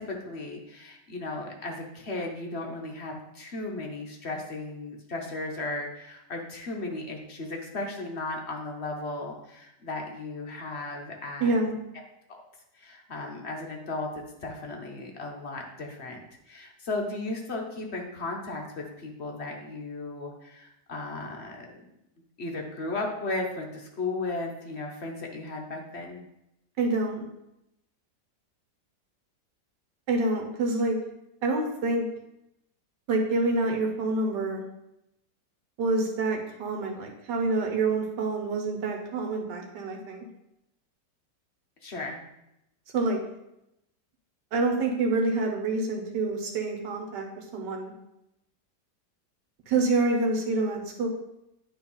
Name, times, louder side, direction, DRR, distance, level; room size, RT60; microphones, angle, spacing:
voice 1, 0.0-11.7 12.7-21.7 22.4-26.2 41.8-42.2, left 2 dB, 45° left, 1 dB, 1.1 m, -35 dB
voice 2, 11.4-11.7 26.8-27.2 30.1-31.0 31.4-32.1 33.1-34.6 35.8-40.3 42.9-43.2 44.5-47.9 49.7-51.1, right 3 dB, 90° right, 2 dB, 1.6 m, -27 dB
9.0 x 3.4 x 5.5 m, 0.85 s
omnidirectional pair, 1.8 m